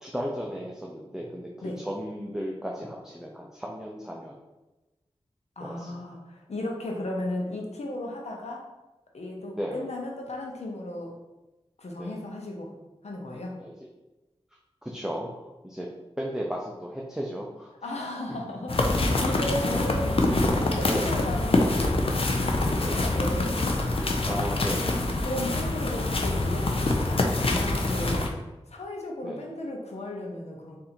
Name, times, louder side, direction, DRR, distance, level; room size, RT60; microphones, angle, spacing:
voice 1, 0.0-4.3 5.6-6.0 9.6-9.8 12.0-12.2 13.6-13.7 14.8-15.9 16.2-17.7 20.9-21.2 22.8-23.0 24.3-24.9 29.2-29.4, equal, 5° right, -2 dB, 0.6 m, -35 dB
voice 2, 5.6-8.7 9.1-11.1 11.8-12.7 13.0-13.6 17.8-20.2 20.5-21.9 22.3-23.8 25.2-28.3 28.7-30.8, left 1 dB, 80° left, 0 dB, 0.8 m, -35 dB
sound 1, 18.7-28.3, left 2 dB, 55° left, 0.6 m, -25 dB
3.8 x 2.8 x 4.3 m, 1.1 s
cardioid pair, 45°, 11 cm